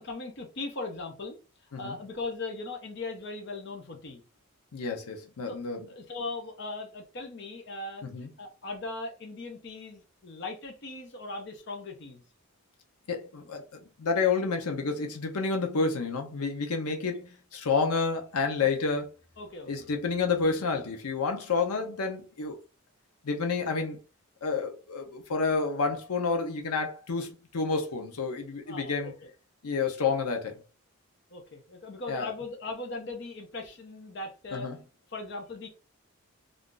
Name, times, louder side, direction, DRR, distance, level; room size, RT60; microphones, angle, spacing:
voice 1, 0.0-1.4 1.8-4.2 5.5-5.6 5.9-12.2 18.6-18.9 19.4-19.9 28.7-29.3 31.3-34.7 35.1-35.7, left 3 dB, 50° left, 0.6 m, -39 dB
voice 2, 4.7-5.9 8.0-8.3 13.1-13.6 14.0-19.1 19.7-22.6 23.2-24.0 24.4-29.1 29.6-30.6 32.1-32.3 34.5-34.8, left 4 dB, 90° left, 0.6 m, -29 dB
2.5 x 2.3 x 3.7 m
head